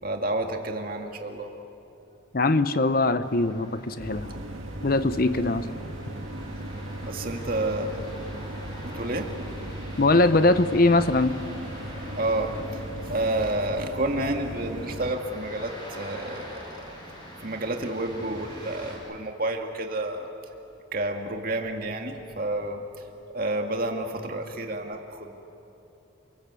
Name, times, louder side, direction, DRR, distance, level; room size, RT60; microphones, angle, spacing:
voice 1, 0.0-1.5 5.3-5.5 7.0-8.0 8.8-9.4 12.1-17.0 17.2-20.3 20.9-23.1 23.3-25.4, right 2 dB, 45° right, 3 dB, 2.2 m, -30 dB
voice 2, 2.3-4.4 4.8-5.7 10.0-11.4, left 2 dB, 45° left, 12 dB, 0.8 m, -21 dB
sound 1, 3.2-19.0, equal, 20° left, 7.2 m, -44 dB
sound 2, 4.0-15.1, right 1 dB, 90° right, 2.3 m, -37 dB
29.5 x 22.0 x 8.3 m, 2.9 s
head